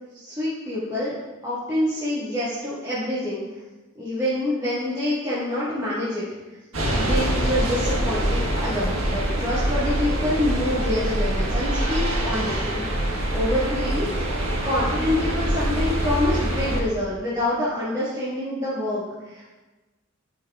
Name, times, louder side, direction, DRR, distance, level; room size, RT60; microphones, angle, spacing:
voice 1, 0.1-1.1 1.4-3.6 4.0-6.6 7.0-13.0 13.3-14.1 14.6-19.6, left 1 dB, 20° right, -12 dB, 2.0 m, -26 dB
sound 1, 6.7-16.8, right 1 dB, 70° right, 1.7 m, -24 dB
11.5 x 6.1 x 2.5 m, 1.2 s
head